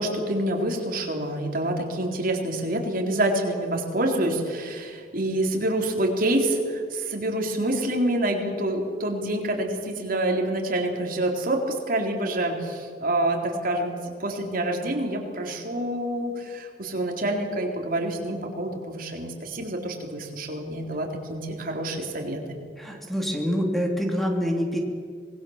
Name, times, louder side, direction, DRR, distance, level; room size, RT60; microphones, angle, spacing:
voice 1, 0.0-22.6, right 1 dB, 50° right, 2 dB, 3.8 m, -27 dB
voice 2, 22.8-24.8, equal, ahead, 1 dB, 2.7 m, -26 dB
26.0 x 20.5 x 7.4 m, 2.1 s
head